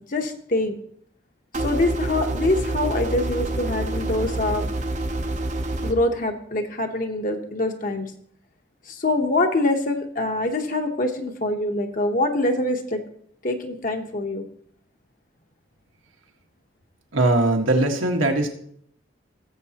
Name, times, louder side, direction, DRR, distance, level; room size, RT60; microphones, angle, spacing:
voice 1, 0.1-0.8 1.5-4.6 5.8-8.1 8.9-13.0 13.4-14.4, left 2 dB, 45° left, 4 dB, 1.0 m, -24 dB
sound 1, 1.5-5.9, right 2 dB, 35° right, 0.8 m, -27 dB
voice 2, 17.1-18.5, right 2 dB, 85° right, 2 dB, 1.7 m, -20 dB
18.5 x 7.5 x 2.9 m, 0.65 s
head